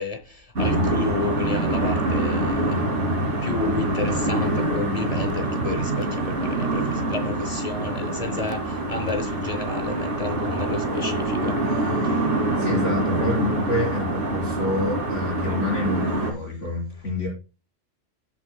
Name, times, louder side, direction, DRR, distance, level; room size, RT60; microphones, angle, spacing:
voice 1, 0.0-2.9 3.4-11.6 12.0-12.2, left 3 dB, 35° left, 0.8 m, -31 dB
sound 1, 0.6-16.3, right 2 dB, 70° right, 2.9 m, -25 dB
voice 2, 12.6-17.3, left 2 dB, 75° left, 4.6 m, -27 dB
17.5 x 5.9 x 2.2 m
omnidirectional pair, 1.3 m